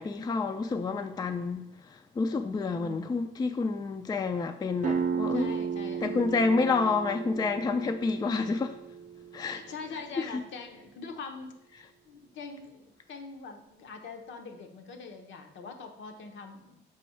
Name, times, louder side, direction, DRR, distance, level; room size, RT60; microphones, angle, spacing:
voice 1, 0.0-5.6 6.0-8.8 9.3-9.6 10.2-10.4, left 4 dB, 20° left, 0.3 m, -29 dB
voice 2, 2.6-3.2 5.3-6.5 9.4-16.8, left 4 dB, 70° left, 0.8 m, -44 dB
sound 1, 4.8-10.2, right 6 dB, 40° right, 0.6 m, -34 dB
5.3 x 3.3 x 5.5 m
cardioid pair, 90°, 20 cm